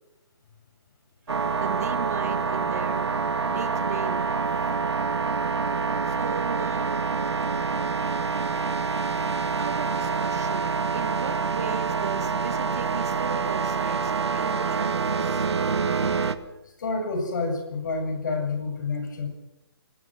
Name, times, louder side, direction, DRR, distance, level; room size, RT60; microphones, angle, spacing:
sound 1, 1.3-16.3, right 5 dB, 85° right, 2.2 m, -26 dB
voice 1, 1.6-3.1 3.5-4.3 6.1-7.0 9.5-15.5, right 7 dB, 35° right, 10 dB, 1.8 m, -36 dB
voice 2, 16.8-19.3, left 3 dB, 45° left, 5 dB, 7.6 m, -28 dB
26.0 x 19.5 x 6.3 m, 0.95 s
hypercardioid pair, 170°, 14 cm